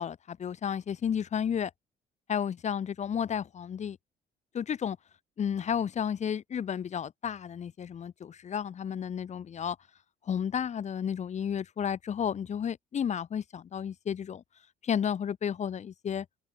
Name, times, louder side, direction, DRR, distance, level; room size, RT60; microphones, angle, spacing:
voice 1, 0.0-1.7 2.3-4.0 4.5-5.0 5.4-9.8 10.3-14.4 14.8-16.3, left 8 dB, 45° left, 2.4 m, -32 dB
cardioid pair, 110°, 17 cm